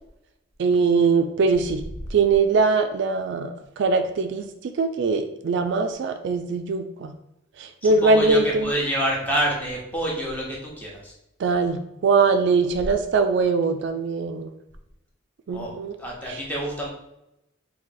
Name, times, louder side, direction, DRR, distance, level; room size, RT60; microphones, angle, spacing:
voice 1, 0.6-1.8 2.1-4.5 4.8-7.1 7.6-8.7 11.4-14.5 15.5-16.0 16.3-16.4, right 4 dB, 60° right, 7 dB, 0.3 m, -22 dB
voice 2, 7.8-11.1 15.5-15.7 16.0-16.9, right 1 dB, 10° left, -3 dB, 0.9 m, -27 dB
4.0 x 2.7 x 3.9 m, 0.86 s
head